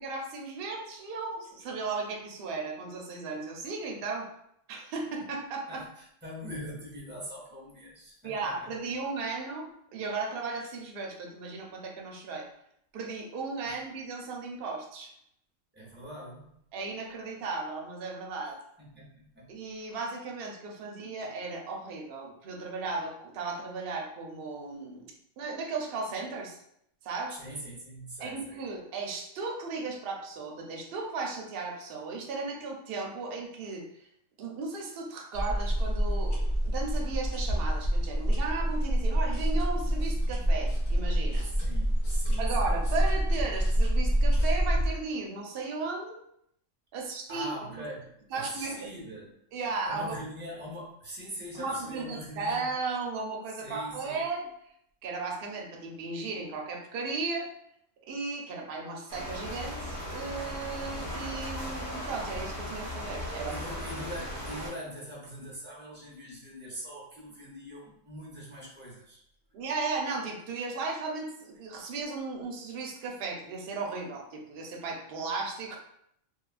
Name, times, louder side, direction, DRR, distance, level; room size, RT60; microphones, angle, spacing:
voice 1, 0.0-4.3 4.7-5.8 8.2-12.5 12.9-15.1 16.7-18.6 19.5-26.6 27.0-27.4 28.2-33.9 34.4-41.5 42.4-46.2 46.9-47.5 48.3-48.9 49.5-50.2 51.5-54.5 55.0-57.5 58.1-63.6 69.5-75.8, right 4 dB, 60° right, 1 dB, 0.7 m, -35 dB
voice 2, 5.7-8.7 13.7-13.8 15.7-16.5 18.9-19.5 27.3-28.6 41.6-42.5 47.3-49.3 49.8-52.7 53.6-54.2 63.5-69.2, equal, 10° right, -5 dB, 0.5 m, -42 dB
sound 1, 35.3-44.9, equal, 60° left, 1.2 m, -27 dB
sound 2, 39.2-44.5, left 1 dB, 80° left, 1.5 m, -52 dB
sound 3, 59.1-64.7, equal, 30° left, 0.7 m, -37 dB
2.8 x 2.3 x 2.4 m, 0.73 s
omnidirectional pair, 1.3 m